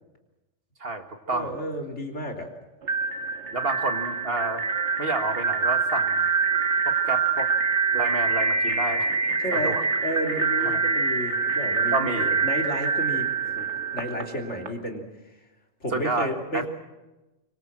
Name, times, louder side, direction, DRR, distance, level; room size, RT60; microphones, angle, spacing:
voice 1, 0.8-1.5 3.5-4.6 5.0-6.2 6.9-7.5 7.9-9.1 9.5-9.8 10.6-10.8 11.9-12.4 15.9-16.7, right 2 dB, 55° right, 5 dB, 2.1 m, -29 dB
voice 2, 1.3-2.5 9.4-13.7 13.9-15.0 15.8-16.7, equal, 75° left, 1 dB, 3.6 m, -32 dB
sound 1, 2.8-14.7, right 4 dB, 75° right, 2.2 m, -25 dB
25.5 x 23.5 x 7.5 m, 1.0 s
omnidirectional pair, 1.2 m